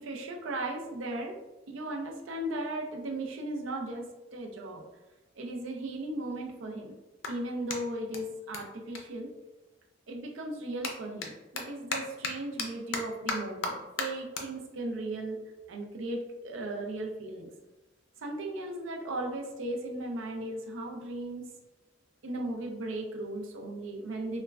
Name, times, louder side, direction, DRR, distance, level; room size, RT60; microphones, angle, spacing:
voice 1, 0.0-1.4 1.7-4.8 5.4-7.0 7.3-9.3 10.1-15.4 15.7-17.5 18.2-21.5 22.2-24.4, right 1 dB, 75° right, 1 dB, 0.5 m, -36 dB
Clapping, 5.9-9.9 10.2-16.9, left 3 dB, 75° left, 0.4 m, -39 dB
3.1 x 2.1 x 2.3 m, 1.1 s
head